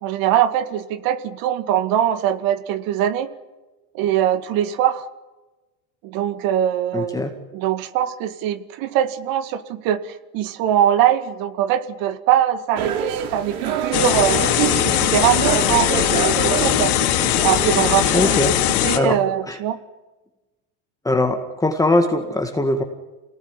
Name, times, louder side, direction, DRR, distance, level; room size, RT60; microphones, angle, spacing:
voice 1, 0.0-3.3 3.9-5.1 6.0-7.3 7.5-14.5 14.8-16.9 17.4-18.3 18.8-19.8, right 11 dB, 50° right, 11 dB, 2.2 m, -22 dB
voice 2, 6.9-7.3 18.1-18.6 19.0-19.2 19.5-19.6 21.0-22.8, left 2 dB, 10° left, 4 dB, 2.0 m, -20 dB
sound 1, 12.8-18.5, right 8 dB, 80° right, 4.4 m, -26 dB
sound 2, 13.9-19.0, left 13 dB, 80° left, 3.1 m, -20 dB
27.5 x 19.0 x 9.9 m, 1.1 s
supercardioid pair, 145°, 43 cm